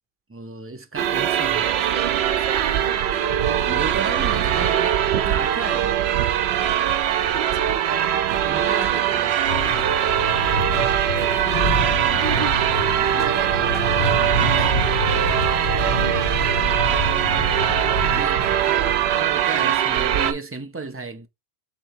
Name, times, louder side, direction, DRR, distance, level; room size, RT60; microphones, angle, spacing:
voice 1, 0.3-1.9 3.3-6.0 8.4-9.4 12.0-12.4 12.7-13.9 14.5-14.7 18.0-21.3, right 4 dB, 20° right, 0.3 m, -34 dB
sound 1, 1.0-20.3, right 10 dB, 90° right, 0.8 m, -21 dB
voice 2, 1.4-3.4 7.2-8.1 8.6-9.3 11.1-11.7 12.2-14.5 15.7-17.0 18.2-19.0, right 6 dB, 60° right, 0.8 m, -36 dB
sound 2, 9.5-18.2, left 1 dB, 75° left, 1.6 m, -27 dB
3.6 x 3.2 x 4.5 m
omnidirectional pair, 1.0 m